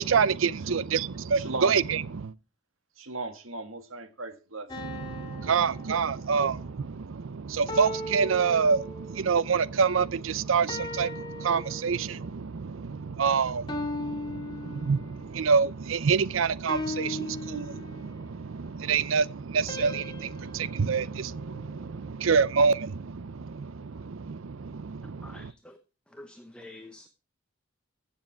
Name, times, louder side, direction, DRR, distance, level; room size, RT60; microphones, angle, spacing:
voice 1, 0.0-2.3 4.8-25.5, right 5 dB, 75° right, 0.5 m, -27 dB
voice 2, 1.3-1.8 3.0-4.8, right 2 dB, 90° right, 1.7 m, -37 dB
sound 1, 4.7-6.6 7.7-9.3 10.7-12.3 13.7-15.4 16.7-18.3 19.7-22.0, left 1 dB, 25° left, 1.9 m, -38 dB
voice 3, 25.0-25.8 26.1-27.1, left 1 dB, 5° left, 0.9 m, -48 dB
15.0 x 7.3 x 4.6 m
head